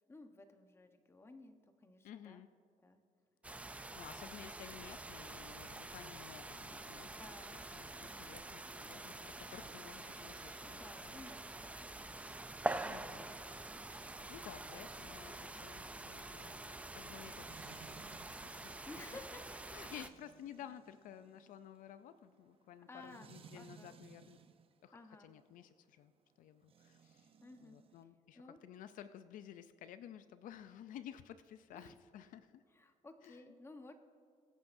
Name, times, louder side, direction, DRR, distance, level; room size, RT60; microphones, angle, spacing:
voice 1, 0.1-2.4 2.8-3.0 7.2-7.6 10.8-12.1 12.8-13.2 13.9-14.2 18.8-19.6 22.9-24.0 24.9-25.3 27.4-27.8 28.3-28.7 31.7-32.0 32.7-33.9, left 2 dB, 20° left, 6 dB, 1.0 m, -55 dB
voice 2, 2.0-2.5 4.0-7.1 7.5-11.2 12.8-13.4 13.9-18.0 18.3-18.9 19.7-24.4 24.8-26.1 26.4-27.3 27.6-32.6 33.2-33.4, left 10 dB, 75° left, 12 dB, 0.5 m, -54 dB
sound 1, 3.4-20.1, right 2 dB, 10° right, 0.4 m, -46 dB
sound 2, 17.5-24.7 26.6-28.0, right 7 dB, 40° right, 0.7 m, -60 dB
22.5 x 9.4 x 2.6 m, 2.4 s
cardioid pair, 125°, 14 cm